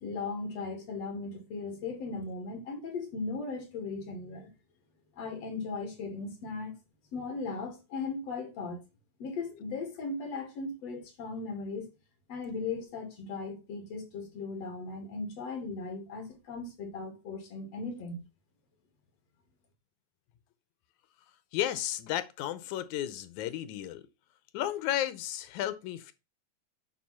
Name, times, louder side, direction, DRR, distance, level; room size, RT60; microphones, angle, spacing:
voice 1, 0.0-4.5 5.2-6.7 7.1-8.8 9.2-11.9 12.3-18.2, left 3 dB, 60° left, 3.3 m, -37 dB
voice 2, 21.5-24.0 24.5-26.1, left 12 dB, 85° left, 2.3 m, -33 dB
9.1 x 4.0 x 5.8 m
omnidirectional pair, 3.3 m